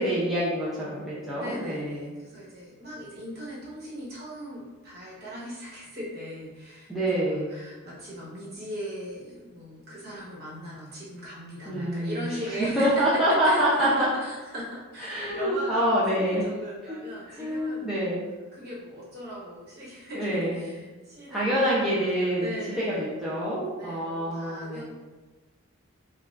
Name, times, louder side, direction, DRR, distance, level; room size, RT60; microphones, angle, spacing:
voice 1, 0.0-2.1 6.9-7.5 11.7-12.3 12.8-14.1 15.1-16.4 17.4-18.2 20.1-20.6 21.3-24.8, equal, ahead, -10 dB, 0.5 m, -26 dB
voice 2, 1.4-18.1 18.5-23.2 23.7-24.8, equal, 45° right, -7 dB, 1.2 m, -39 dB
5.2 x 2.4 x 2.4 m, 1.2 s
head